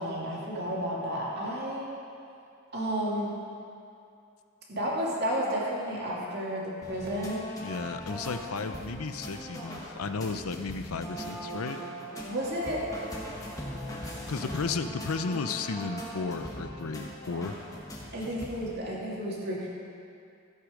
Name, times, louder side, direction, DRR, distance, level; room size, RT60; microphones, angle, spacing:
voice 1, 0.0-1.9 2.7-3.3 4.7-7.4 12.3-12.8 14.2-14.3 18.1-19.7, equal, 50° right, -5 dB, 2.4 m, -32 dB
sound 1, 6.8-18.7, equal, 15° left, 1.4 m, -40 dB
voice 2, 7.6-11.8 14.3-17.6, left 4 dB, 85° left, 9 dB, 0.6 m, -34 dB
13.5 x 8.3 x 5.2 m, 2.5 s
head